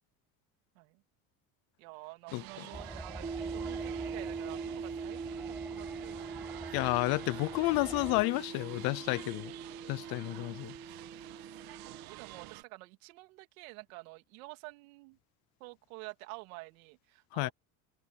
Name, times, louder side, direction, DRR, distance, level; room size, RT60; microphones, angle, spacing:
voice 1, 1.8-6.3 12.1-15.2 15.6-17.5, right 24 dB, 90° right, 2.9 m, -49 dB
sound 1, 2.3-12.6, right 17 dB, 60° right, 1.8 m, -49 dB
sound 2, 2.7-8.2, right 2 dB, 5° right, 0.5 m, -46 dB
sound 3, 3.2-12.1, right 5 dB, 20° right, 1.3 m, -42 dB
voice 2, 6.7-9.5 9.9-10.7 17.3-17.5, left 23 dB, 60° left, 0.8 m, -31 dB
cardioid pair, 135°, 40 cm